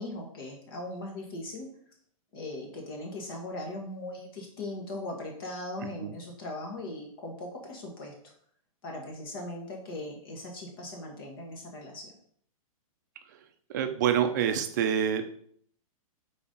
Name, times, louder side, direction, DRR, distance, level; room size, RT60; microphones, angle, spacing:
voice 1, 0.0-1.7 2.3-8.1 8.8-12.1, left 2 dB, 40° left, 1 dB, 1.7 m, -39 dB
voice 2, 13.7-15.3, right 9 dB, 30° right, 8 dB, 0.6 m, -26 dB
4.8 x 4.1 x 5.3 m, 0.63 s
hypercardioid pair, 170°, 18 cm